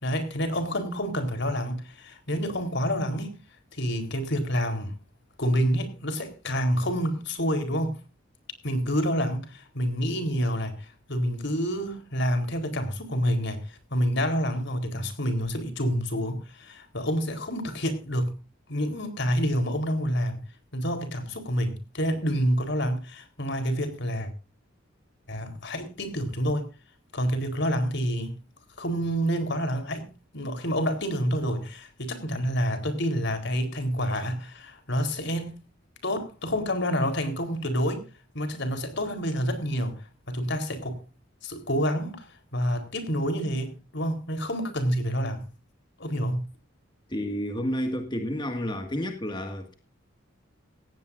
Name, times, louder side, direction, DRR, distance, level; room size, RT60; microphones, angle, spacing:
voice 1, 0.0-3.4 3.7-5.0 5.4-8.0 8.6-18.3 18.7-20.4 20.7-24.3 25.3-26.7 27.1-28.4 28.8-35.6 36.0-38.0 38.3-40.0 40.3-41.0 41.4-42.3 42.5-45.4 46.0-46.5, equal, 65° left, 4.2 m, -28 dB
voice 2, 47.1-49.7, equal, 25° left, 2.1 m, -30 dB
18.0 x 16.5 x 2.7 m
head